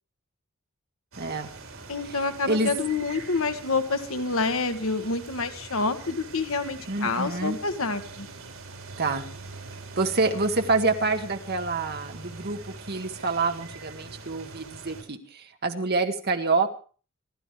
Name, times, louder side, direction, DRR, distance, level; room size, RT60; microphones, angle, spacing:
sound 1, 1.1-15.0, right 3 dB, 85° right, 4.2 m, -43 dB
voice 1, 1.2-1.5 2.4-2.7 6.9-7.6 9.0-9.3 9.9-16.7, right 3 dB, 50° right, 5 dB, 1.7 m, -27 dB
voice 2, 1.9-8.3, left 3 dB, 80° left, 7 dB, 1.6 m, -28 dB
27.0 x 12.5 x 3.3 m, 0.38 s
head